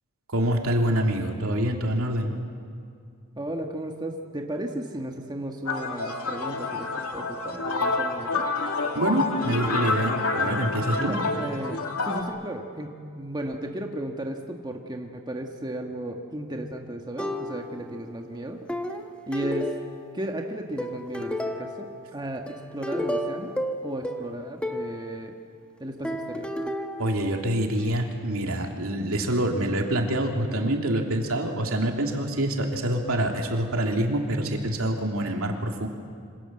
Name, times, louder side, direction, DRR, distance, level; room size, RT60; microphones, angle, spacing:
voice 1, 0.3-2.3 8.9-11.1 27.0-35.9, right 1 dB, 70° right, 2 dB, 3.3 m, -26 dB
voice 2, 3.3-8.4 11.0-18.6 19.3-19.7 20.1-21.9 22.1-23.5 23.8-25.3 25.8-26.5, right 1 dB, 20° right, 2 dB, 1.6 m, -34 dB
sound 1, 5.7-12.2, left 3 dB, 85° left, 2.7 m, -28 dB
sound 2, 17.2-18.0 18.7-20.3 20.8-22.0 22.5-25.0 26.0-27.8, left 1 dB, 5° left, 1.5 m, -32 dB
27.5 x 26.0 x 7.8 m, 2.3 s
head